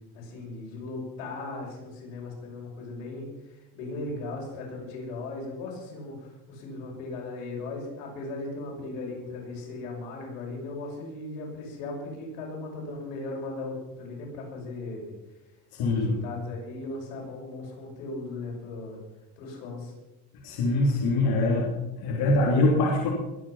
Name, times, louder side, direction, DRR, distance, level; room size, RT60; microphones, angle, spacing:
voice 1, 0.1-15.2 15.8-19.0 19.4-19.9, left 2 dB, 90° left, -1 dB, 6.4 m, -37 dB
voice 2, 15.7-16.1 20.4-21.7 22.0-23.1, left 2 dB, 60° left, -3 dB, 3.4 m, -23 dB
21.5 x 8.7 x 5.9 m, 1.0 s
cardioid pair, 130°, 42 cm